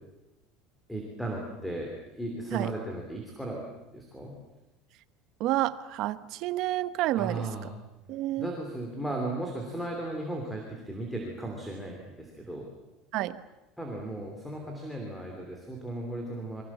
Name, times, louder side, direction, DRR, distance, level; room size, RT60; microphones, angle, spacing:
voice 1, 0.9-3.6 3.9-4.3 7.2-7.7 8.4-12.7 13.8-16.6, right 1 dB, ahead, 1 dB, 2.9 m, -36 dB
voice 2, 5.4-7.5 8.1-8.5 13.1-13.4, right 15 dB, 45° right, 14 dB, 1.0 m, -29 dB
28.5 x 23.0 x 7.3 m, 1.0 s
cardioid pair, 180°, 0 cm